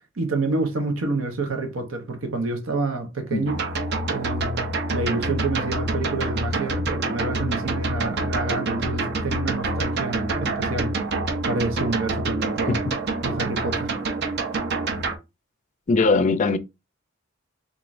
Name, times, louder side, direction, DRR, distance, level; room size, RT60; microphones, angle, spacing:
voice 1, 0.2-3.5 4.1-10.9 11.5-12.8 13.2-14.0, right 3 dB, 85° right, 0.8 m, -28 dB
sound 1, 3.5-15.2, right 2 dB, 55° right, 0.6 m, -26 dB
voice 2, 15.9-16.6, left 3 dB, 40° left, 0.4 m, -20 dB
3.8 x 3.2 x 2.5 m
head